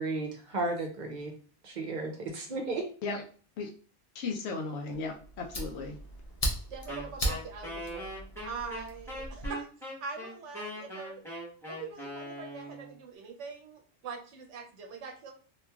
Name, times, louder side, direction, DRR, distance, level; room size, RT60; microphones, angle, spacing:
voice 1, 0.0-1.3 1.6-2.9 3.1-3.2, right 3 dB, 50° right, 3 dB, 0.6 m, -34 dB
voice 2, 4.2-6.0, left 4 dB, 75° left, 2 dB, 0.8 m, -35 dB
Fire, 4.9-9.5, equal, 40° left, 0.6 m, -37 dB
voice 3, 6.7-11.2 11.7-15.3, right 5 dB, 85° right, 2 dB, 0.9 m, -43 dB
Wind instrument woodwind instrument, 6.9-12.9, equal, ahead, 1.1 m, -40 dB
3.0 x 2.4 x 2.3 m, 0.41 s
omnidirectional pair, 1.2 m